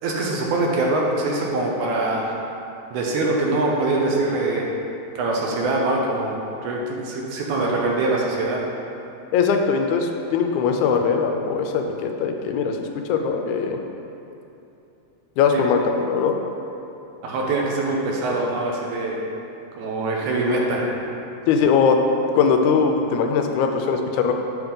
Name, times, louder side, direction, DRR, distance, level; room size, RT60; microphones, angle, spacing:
voice 1, 0.0-2.3 2.9-4.7 5.2-8.6 15.5-15.6 17.2-19.2 19.7-20.9, right 2 dB, 85° right, -1 dB, 2.2 m, -23 dB
voice 2, 9.3-13.8 15.4-16.4 21.5-22.0 22.3-24.3, left 6 dB, 85° left, 4 dB, 2.0 m, -20 dB
7.3 x 3.5 x 5.3 m, 2.9 s
omnidirectional pair, 3.4 m